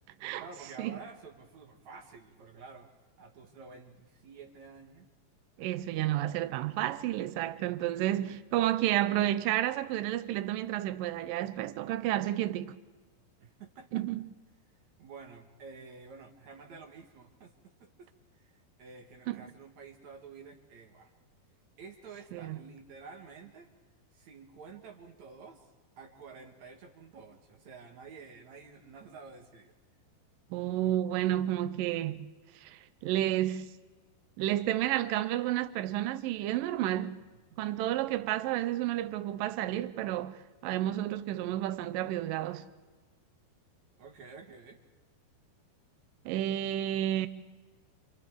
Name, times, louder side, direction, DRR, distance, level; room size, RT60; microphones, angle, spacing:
voice 1, 0.4-5.1 13.4-14.0 15.0-18.1 18.3-21.1 21.8-23.7 24.1-25.7 26.0-29.7 37.5-37.9 44.0-44.8, right 5 dB, 55° right, 2.2 m, -50 dB
voice 2, 5.6-12.8 13.9-14.3 19.3-19.4 22.3-22.6 30.5-32.3 32.6-33.7 34.4-37.2 37.6-42.6 46.3-47.3, right 13 dB, 85° right, 1.9 m, -31 dB
29.5 x 27.0 x 3.5 m
omnidirectional pair, 4.8 m